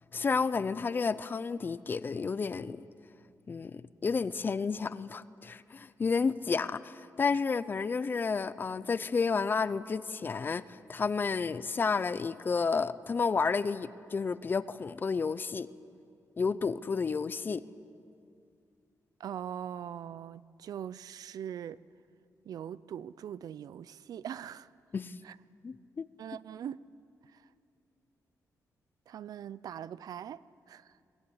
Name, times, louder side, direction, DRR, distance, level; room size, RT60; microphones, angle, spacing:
voice 1, 0.1-2.8 3.5-15.7 16.4-17.6 24.9-25.2 25.6-26.1, left 5 dB, 30° left, 0.5 m, -31 dB
voice 2, 19.2-21.8 22.5-24.7 25.2-25.4 26.2-26.8 29.1-30.9, right 9 dB, 75° right, 0.5 m, -41 dB
22.0 x 18.0 x 9.9 m
wide cardioid pair, 165°, 6 cm